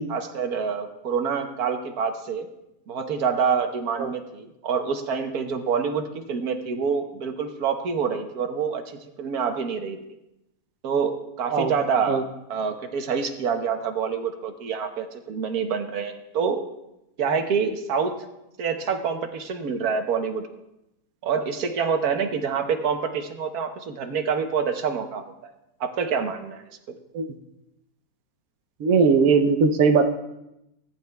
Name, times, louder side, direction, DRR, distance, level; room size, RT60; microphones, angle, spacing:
voice 1, 0.0-2.5 2.9-8.8 9.2-10.0 10.8-12.2 12.5-16.6 17.2-18.2 18.6-20.4 21.2-25.5 25.8-27.0, right 6 dB, 85° right, 6 dB, 1.5 m, -27 dB
voice 2, 28.8-30.1, right 5 dB, 70° right, 5 dB, 1.2 m, -19 dB
17.5 x 10.5 x 2.3 m, 0.88 s
omnidirectional pair, 1.6 m